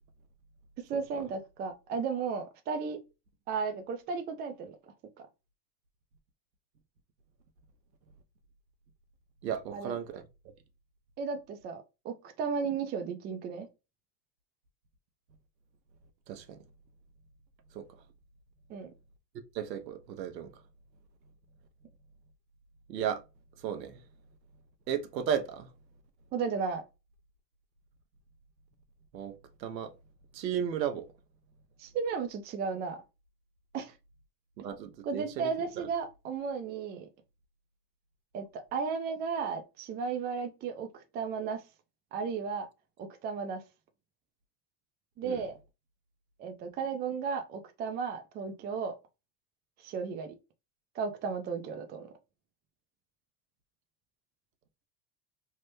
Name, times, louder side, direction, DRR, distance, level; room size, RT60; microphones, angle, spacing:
voice 1, 0.8-3.0 3.5-4.8 5.2-5.3 9.7-9.9 11.2-13.7 18.7-18.9 26.3-26.8 31.8-33.0 33.7-33.9 35.1-37.1 38.3-41.6 42.1-42.7 43.0-43.6 45.2-45.6 46.4-49.0 49.8-50.3 51.0-52.1, right 5 dB, 20° right, 0.4 m, -34 dB
voice 2, 9.4-10.2 16.3-16.6 17.7-17.9 19.5-20.6 22.9-23.2 23.6-24.0 24.9-25.7 29.1-29.3 29.6-29.9 30.3-31.1 34.6-35.9 45.2-45.4, right 8 dB, 85° right, 0.7 m, -34 dB
3.3 x 2.1 x 3.0 m
hypercardioid pair, 90°, 49 cm